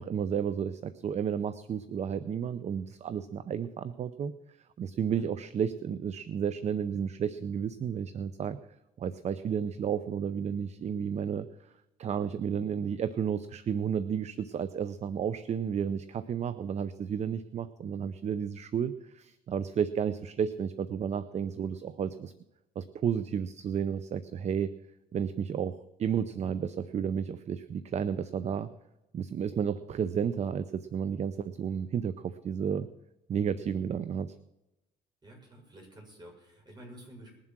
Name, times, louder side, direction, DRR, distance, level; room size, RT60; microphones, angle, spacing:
voice 1, 0.0-4.3 4.8-8.6 9.0-11.7 12.0-22.3 22.8-24.7 25.1-28.7 29.1-32.9 33.3-34.3, right 7 dB, 40° right, 14 dB, 0.6 m, -32 dB
voice 2, 35.2-37.4, right 1 dB, 25° right, 0 dB, 6.8 m, -50 dB
20.5 x 7.5 x 6.1 m, 0.94 s
cardioid pair, 110°, 17 cm